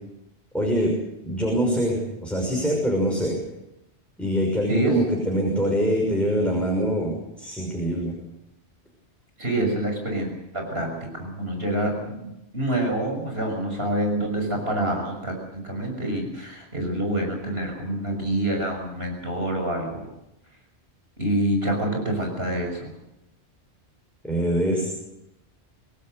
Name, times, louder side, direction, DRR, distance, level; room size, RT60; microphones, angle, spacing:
voice 1, 0.5-0.9 1.2-3.4 4.2-8.1 24.2-24.9, equal, ahead, -1 dB, 6.1 m, -24 dB
voice 2, 9.4-10.9 11.1-12.2 12.5-20.1 21.2-22.9, right 1 dB, 60° right, 2 dB, 6.7 m, -27 dB
27.0 x 18.0 x 6.7 m, 0.89 s
omnidirectional pair, 1.1 m